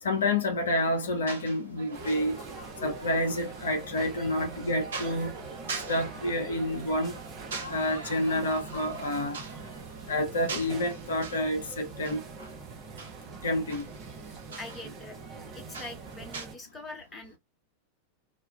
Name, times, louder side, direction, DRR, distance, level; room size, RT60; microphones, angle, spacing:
voice 1, 0.0-2.4 2.8-5.3 5.9-7.2 7.7-9.4 10.1-12.2 13.4-13.9, left 1 dB, 65° left, 0.5 m, -29 dB
sound 1, 0.8-16.5, right 4 dB, 65° right, 0.7 m, -45 dB
sound 2, 1.9-16.6, right 4 dB, 30° right, 0.8 m, -44 dB
sound 3, 1.9-10.6, right 2 dB, 80° right, 1.2 m, -47 dB
voice 2, 14.6-15.2 15.5-17.4, left 2 dB, 15° left, 0.9 m, -43 dB
2.3 x 2.2 x 3.1 m
figure-of-eight pair, 90°, 0 cm